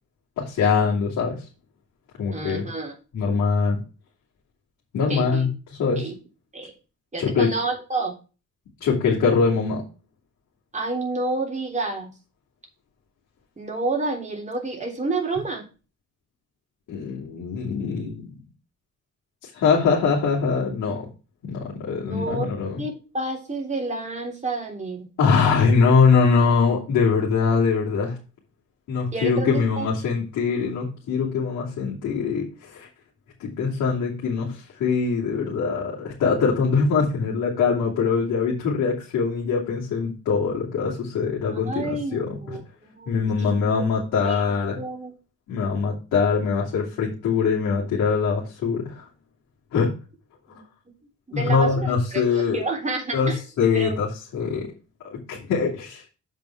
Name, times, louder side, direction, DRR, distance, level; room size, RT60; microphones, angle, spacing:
voice 1, 0.4-1.5 2.2-2.6 3.1-3.8 4.9-5.5 5.8-6.1 7.2-7.5 8.8-9.8 16.9-18.3 19.4-21.1 21.4-22.8 25.2-28.2 28.9-32.9 33.4-42.6 43.1-44.8 45.5-49.1 49.7-49.9 51.3-52.6 53.1-53.3 53.6-54.7 55.0-56.0, left 5 dB, 80° left, -5 dB, 2.9 m, -23 dB
voice 2, 2.3-2.9 5.1-5.4 6.0-6.2 6.5-6.7 7.1-8.1 10.7-12.1 13.6-15.6 22.1-22.5 22.8-25.1 29.1-29.9 41.5-43.5 44.2-44.4 44.8-45.1 50.5-50.6 51.3-53.4 53.7-54.0, right 3 dB, 25° right, 0 dB, 3.5 m, -29 dB
7.5 x 5.4 x 5.9 m, 0.33 s
cardioid pair, 90°, 30 cm